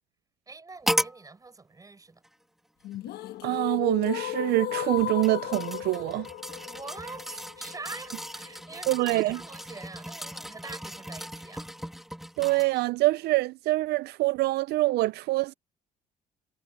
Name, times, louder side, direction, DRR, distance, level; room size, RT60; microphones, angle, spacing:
voice 1, 0.5-2.2 6.6-11.7, right 3 dB, 20° right, 5.5 m, -44 dB
sound 1, 0.9-1.2 2.2-2.3 4.8-12.8 13.3-13.4, equal, ahead, 2.0 m, -36 dB
sound 2, 2.8-8.9, left 13 dB, 75° left, 1.2 m, -35 dB
voice 2, 3.4-6.3 8.9-9.4 12.4-15.5, right 19 dB, 75° right, 0.4 m, -25 dB
cardioid pair, 110°, 17 cm